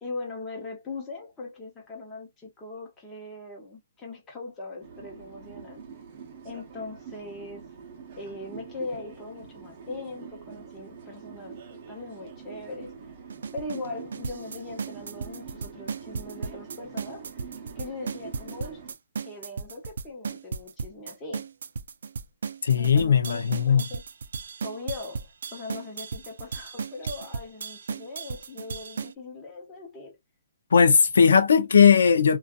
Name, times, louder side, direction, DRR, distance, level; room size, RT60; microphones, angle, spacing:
voice 1, 0.0-5.8 6.4-7.6 8.2-12.9 13.5-17.3 17.8-18.9 19.2-21.5 22.8-24.0 24.6-30.2, left 3 dB, 15° left, 1.0 m, -40 dB
sound 1, 4.8-18.9, right 6 dB, 35° right, 0.8 m, -44 dB
sound 2, 13.3-29.1, right 5 dB, 75° right, 0.3 m, -35 dB
voice 2, 22.6-23.8 30.7-32.4, left 6 dB, 90° left, 0.6 m, -18 dB
2.7 x 2.4 x 2.2 m
hypercardioid pair, 165°, 0 cm